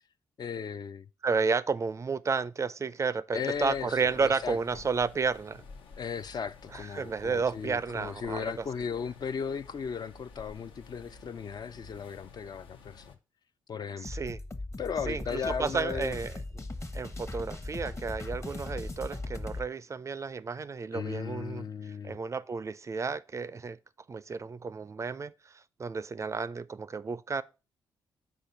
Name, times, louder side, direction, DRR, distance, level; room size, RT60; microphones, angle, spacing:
voice 1, 0.4-1.1 3.3-4.6 6.0-13.1 13.7-14.1 14.8-16.2 20.9-22.2, left 6 dB, 45° left, 0.4 m, -36 dB
voice 2, 1.2-5.6 6.7-8.5 14.0-14.4 15.1-16.3 16.9-21.7 22.0-23.8 24.1-27.4, right 5 dB, 35° right, 0.4 m, -32 dB
sound 1, 3.5-13.2, left 4 dB, 75° left, 0.8 m, -52 dB
sound 2, 14.0-19.7, left 2 dB, 30° left, 1.0 m, -38 dB
5.1 x 4.3 x 5.8 m
hypercardioid pair, 45°, 9 cm